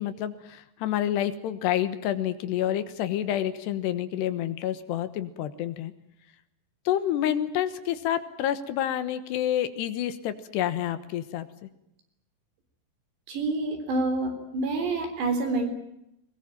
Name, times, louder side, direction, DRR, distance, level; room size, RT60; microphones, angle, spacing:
voice 1, 0.0-5.9 6.9-11.5, left 11 dB, 80° left, 12 dB, 3.3 m, -28 dB
voice 2, 13.3-15.7, right 2 dB, 75° right, 6 dB, 5.7 m, -27 dB
21.5 x 21.5 x 9.1 m, 0.82 s
omnidirectional pair, 5.0 m